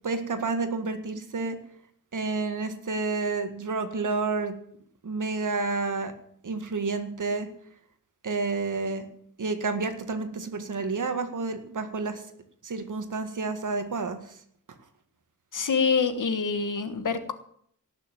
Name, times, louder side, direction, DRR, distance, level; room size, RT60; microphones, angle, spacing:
voice 1, 0.0-1.6 2.1-4.6 5.0-6.1 6.4-7.5 8.2-9.1 9.4-12.2 12.6-14.3, right 3 dB, 60° right, 7 dB, 1.9 m, -30 dB
voice 2, 15.5-17.3, left 5 dB, 60° left, 10 dB, 1.5 m, -26 dB
18.0 x 6.9 x 9.2 m, 0.65 s
wide cardioid pair, 145°, 35 cm